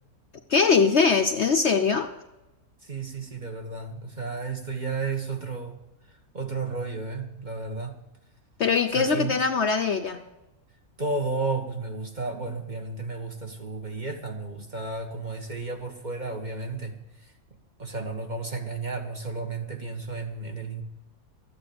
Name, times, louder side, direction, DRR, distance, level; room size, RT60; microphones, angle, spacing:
voice 1, 0.5-2.1 8.6-10.2, left 5 dB, 55° left, 5 dB, 0.9 m, -22 dB
voice 2, 2.9-5.8 6.3-7.9 8.9-9.3 11.0-17.0 17.8-20.8, right 3 dB, 30° right, 3 dB, 1.5 m, -32 dB
13.5 x 8.9 x 6.9 m, 0.97 s
omnidirectional pair, 1.6 m